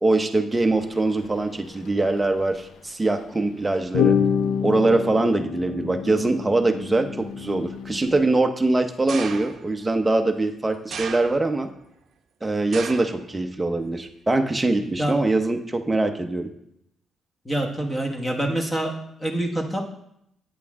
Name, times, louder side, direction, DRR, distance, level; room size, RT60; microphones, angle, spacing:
voice 1, 0.0-4.2 4.6-11.7 12.4-16.5, right 2 dB, 10° right, 5 dB, 0.6 m, -23 dB
sound 1, 0.8-0.9 1.2-1.4 2.2-2.6 3.9-8.2, left 7 dB, 80° left, 0.5 m, -26 dB
sound 2, 9.1-9.8 10.9-11.7 12.7-13.2 13.6-14.1 14.9-15.0, right 6 dB, 45° right, 0.7 m, -35 dB
voice 2, 17.4-18.9 19.2-19.8, right 1 dB, 10° left, 2 dB, 1.1 m, -26 dB
8.6 x 8.2 x 3.6 m, 0.76 s
cardioid pair, 175°, 0 cm